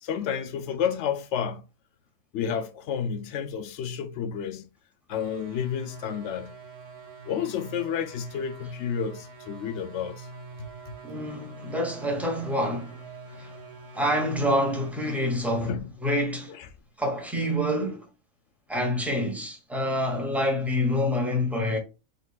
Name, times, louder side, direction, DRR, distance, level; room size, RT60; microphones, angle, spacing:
voice 1, 0.0-1.6 2.3-4.7 5.1-6.5 7.3-10.3 10.6-11.0 15.6-15.8, left 7 dB, 65° left, 0.8 m, -30 dB
sound 1, 5.1-14.9, right 4 dB, 65° right, 1.2 m, -45 dB
voice 2, 11.0-13.0 13.3-13.5 13.9-15.7 16.0-16.5 17.0-18.1 18.7-21.8, left 1 dB, ahead, 0.7 m, -27 dB
3.8 x 3.5 x 2.2 m
omnidirectional pair, 1.4 m